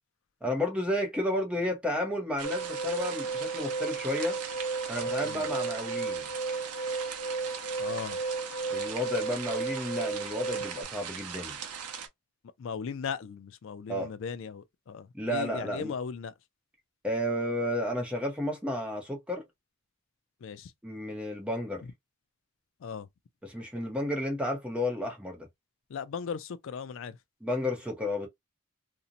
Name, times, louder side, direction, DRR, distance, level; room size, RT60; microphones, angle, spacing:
voice 1, 0.4-4.4 4.9-6.3 8.7-11.6 13.9-14.1 15.1-15.9 17.0-19.4 20.8-21.8 23.4-25.5 27.4-28.3, left 1 dB, 5° right, 0.7 m, -32 dB
sound 1, 2.4-10.8, right 4 dB, 40° left, 1.1 m, -34 dB
sound 2, 2.4-12.1, right 7 dB, 85° right, 0.6 m, -40 dB
voice 2, 7.8-8.2 12.6-16.3 20.4-20.7 22.8-23.1 25.9-27.2, left 6 dB, 60° left, 0.3 m, -37 dB
2.6 x 2.0 x 2.6 m
head